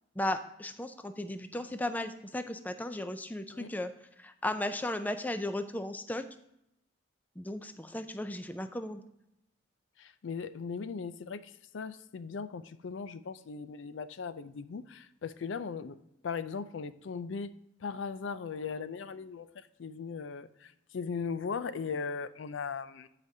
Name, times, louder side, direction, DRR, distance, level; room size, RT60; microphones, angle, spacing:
voice 1, 0.2-3.9 4.2-6.2 7.4-9.0, left 1 dB, 10° left, 9 dB, 0.4 m, -35 dB
voice 2, 10.0-16.0 16.2-17.5 17.8-23.1, left 5 dB, 75° left, 13 dB, 0.4 m, -38 dB
14.0 x 5.0 x 2.7 m, 0.81 s
head